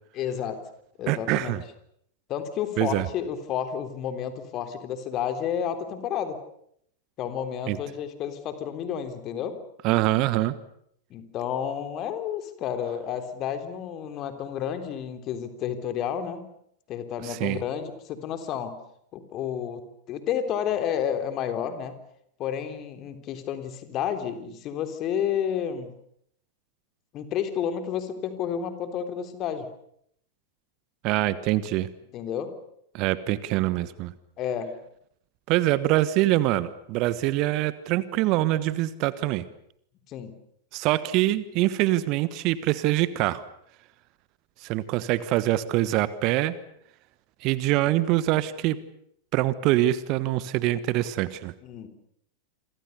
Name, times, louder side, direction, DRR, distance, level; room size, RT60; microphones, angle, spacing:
voice 1, 0.1-0.6 1.0-1.5 2.3-6.4 7.2-9.6 11.1-16.5 16.9-18.8 19.1-22.0 22.4-25.9 27.1-29.7 32.1-32.5 34.4-34.8 40.1-40.4 51.6-51.9, left 9 dB, 35° left, 9 dB, 3.6 m, -31 dB
voice 2, 1.1-1.6 2.8-3.0 7.7-7.8 9.8-10.5 17.3-17.6 31.0-31.9 32.9-34.1 35.5-39.4 40.7-43.4 44.6-46.6 47.4-48.8 49.3-51.5, right 16 dB, 40° right, 17 dB, 1.3 m, -24 dB
28.0 x 25.5 x 6.9 m, 0.71 s
figure-of-eight pair, 90°, 0 cm